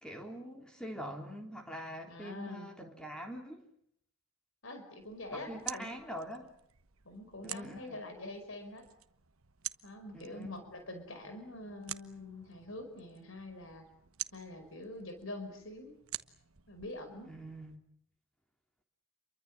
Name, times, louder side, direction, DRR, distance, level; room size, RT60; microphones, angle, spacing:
voice 1, 0.0-3.7 5.3-6.5 7.4-8.0 10.1-10.5 17.3-17.8, equal, 5° left, 2 dB, 3.6 m, -44 dB
voice 2, 2.1-2.7 4.6-5.9 7.1-8.9 9.8-13.9 14.3-16.0 16.7-17.3, left 2 dB, 65° left, 7 dB, 5.3 m, -45 dB
sound 1, 5.0-17.8, right 13 dB, 80° right, 1.2 m, -48 dB
29.0 x 23.5 x 7.6 m, 0.70 s
head